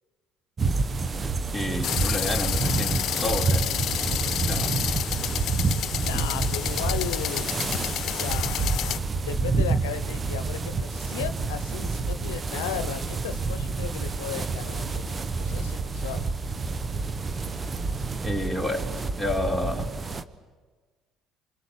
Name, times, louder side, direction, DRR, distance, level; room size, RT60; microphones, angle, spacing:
sound 1, 0.6-20.2, right 4 dB, 35° right, 1.3 m, -28 dB
voice 1, 1.5-3.7 4.4-4.8 6.1-6.4 18.2-18.9 19.2-19.9, left 1 dB, ahead, 1 dB, 4.5 m, -30 dB
sound 2, 1.8-9.0, left 11 dB, 60° left, 0.9 m, -30 dB
voice 2, 6.0-7.5 8.0-16.3, left 11 dB, 85° left, 10 dB, 0.8 m, -36 dB
28.0 x 26.5 x 6.8 m, 1.4 s
hypercardioid pair, 65°, 0 cm